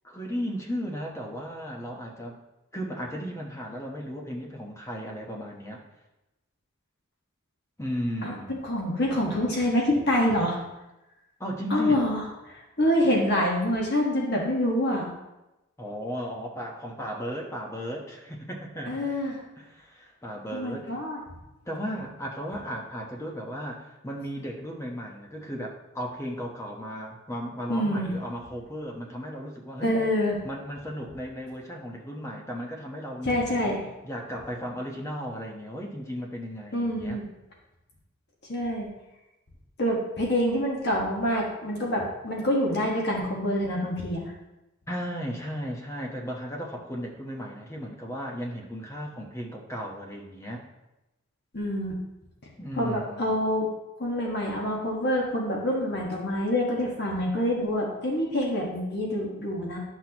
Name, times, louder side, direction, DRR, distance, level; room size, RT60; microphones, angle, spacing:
voice 1, 0.0-2.4 2.7-5.8 7.8-8.6 11.4-12.0 15.8-19.1 19.6-21.0 21.7-30.0 30.4-33.7 34.0-37.2 44.9-50.6 52.6-53.3, equal, 15° left, 0 dB, 1.1 m, -35 dB
voice 2, 8.2-10.6 11.7-15.1 18.9-19.4 20.5-21.2 27.7-28.1 29.8-30.4 33.2-33.8 36.7-37.2 38.5-38.9 39.8-44.3 51.5-52.0 52.8-53.7 54.0-59.8, left 1 dB, 55° left, -2 dB, 1.4 m, -26 dB
11.0 x 6.1 x 2.9 m, 0.98 s
head